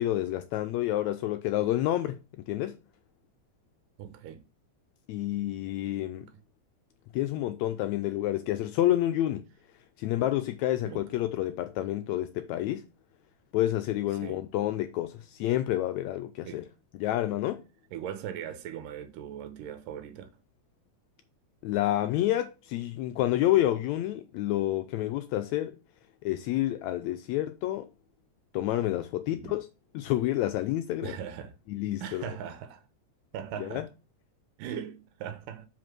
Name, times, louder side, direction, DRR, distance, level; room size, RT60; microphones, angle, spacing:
voice 1, 0.0-2.8 5.1-6.3 7.1-9.5 10.0-12.8 13.5-16.7 17.0-17.6 21.6-25.8 26.2-27.9 28.5-29.7 29.9-31.2 31.7-32.3 33.6-33.8, left 14 dB, 85° left, 1.6 m, -29 dB
voice 2, 4.0-4.4 6.2-6.3 10.8-11.1 14.2-14.4 16.4-16.7 17.9-20.3 29.3-29.6 31.0-31.5 32.0-32.8 33.3-33.9 34.6-35.7, right 9 dB, 90° right, 2.4 m, -39 dB
5.2 x 5.0 x 5.9 m
omnidirectional pair, 3.7 m